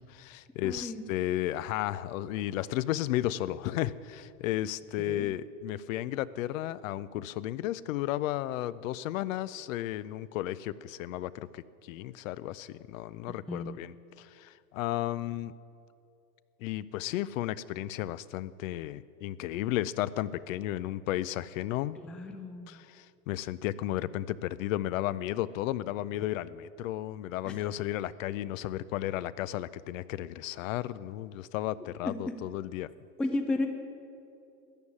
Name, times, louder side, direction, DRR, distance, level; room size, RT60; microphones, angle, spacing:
voice 1, 0.0-15.5 16.6-22.0 22.7-32.9, left 14 dB, 55° left, 17 dB, 0.6 m, -33 dB
voice 2, 0.6-1.0 5.0-5.3 13.5-13.7 22.0-22.7 27.4-27.6 32.0-32.1 33.2-33.7, left 2 dB, ahead, 6 dB, 0.4 m, -33 dB
14.0 x 9.5 x 9.8 m, 2.7 s
hypercardioid pair, 110°, 49 cm